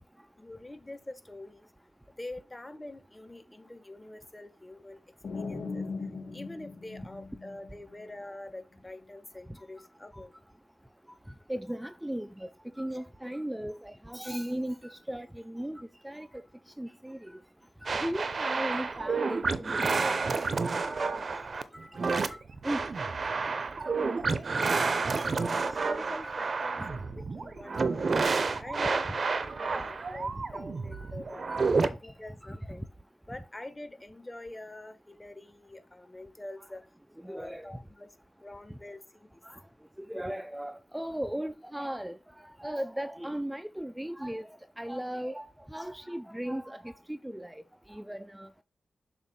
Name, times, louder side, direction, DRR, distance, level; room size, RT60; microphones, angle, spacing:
voice 1, 0.4-1.7 2.2-5.0 5.3-5.9 6.3-10.3 25.3-27.0 27.3-31.5 32.0-32.9 33.3-36.8 37.2-38.1 38.4-39.4 45.8-45.9, left 1 dB, 25° left, 1.1 m, -45 dB
sound 1, 5.2-8.0, left 4 dB, 75° left, 1.2 m, -38 dB
voice 2, 11.5-12.5 12.8-16.4 16.8-17.4 17.8-21.0 21.3-21.4 21.7-22.9 25.1-25.3 26.2-26.3 26.8-26.9 28.3-28.5 30.9-31.1 31.8-31.9 37.2-37.6 39.4-39.6 40.1-42.2 42.6-44.5 44.8-46.8 47.1-47.6 47.9-48.5, right 1 dB, 10° right, 0.4 m, -37 dB
sound 2, 17.9-31.9, right 4 dB, 55° right, 0.7 m, -30 dB
7.0 x 2.6 x 5.4 m
cardioid pair, 50°, 0 cm